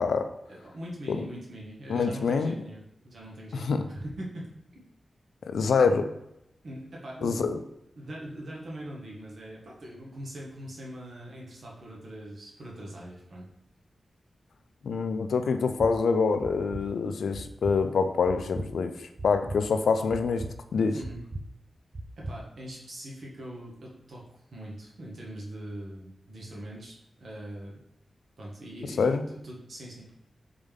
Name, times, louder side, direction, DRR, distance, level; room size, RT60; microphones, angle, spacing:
voice 1, 0.5-2.8 3.0-4.8 6.6-7.4 8.0-13.5 20.9-21.2 22.2-24.2 24.5-27.8 28.4-30.1, right 1 dB, 65° right, -4 dB, 1.4 m, -42 dB
voice 2, 1.9-2.6 3.5-3.8 5.4-6.1 7.2-7.6 14.8-20.4 20.7-21.0 29.0-29.2, left 5 dB, 90° left, 9 dB, 0.4 m, -26 dB
sound 1, 15.8-15.9 16.4-16.8 17.3-17.8 18.3-18.7 19.2-19.6 20.1-20.5 21.0-21.4 21.9-22.4, right 2 dB, 40° right, 0.5 m, -37 dB
4.2 x 3.6 x 3.5 m, 0.85 s
wide cardioid pair, 85°, 0 cm